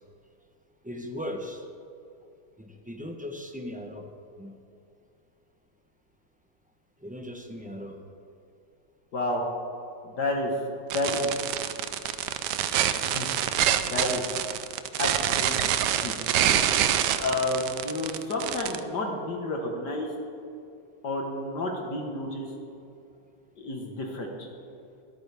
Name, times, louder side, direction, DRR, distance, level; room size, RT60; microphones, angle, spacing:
voice 1, 0.8-1.7 2.6-4.1 4.4-4.6 7.0-8.0 14.9-15.0, left 1 dB, 10° right, 2 dB, 0.4 m, -38 dB
voice 2, 9.1-9.4 10.0-10.5 10.8-11.3 13.0-13.6 13.9-14.2 15.0-15.7 16.0-16.1 17.2-20.1 21.0-22.5 23.6-24.5, left 2 dB, 65° left, 1 dB, 2.0 m, -30 dB
sound 1, 10.9-18.8, right 10 dB, 75° right, 1.2 m, -26 dB
23.5 x 9.0 x 3.5 m, 2.6 s
omnidirectional pair, 2.0 m